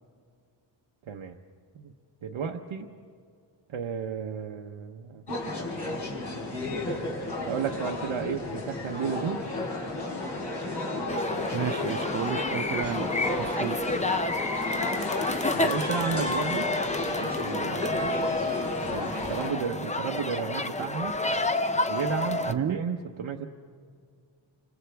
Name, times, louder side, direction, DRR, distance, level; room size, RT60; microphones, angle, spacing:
voice 1, 1.1-1.4 1.7-1.9 2.2-2.9 3.7-5.4 7.5-9.5 15.5-16.7 17.2-18.3 18.9-21.2 21.9-23.5, right 6 dB, 85° right, 1 dB, 1.0 m, -33 dB
sound 1, 5.3-19.5, left 2 dB, 55° left, 4.7 m, -32 dB
sound 2, 11.1-22.5, left 2 dB, 15° left, 0.6 m, -30 dB
voice 2, 11.5-13.1 13.6-13.8 22.5-22.8, right 9 dB, 35° right, 16 dB, 0.4 m, -31 dB
30.0 x 25.5 x 3.4 m, 2.2 s
wide cardioid pair, 130°, 47 cm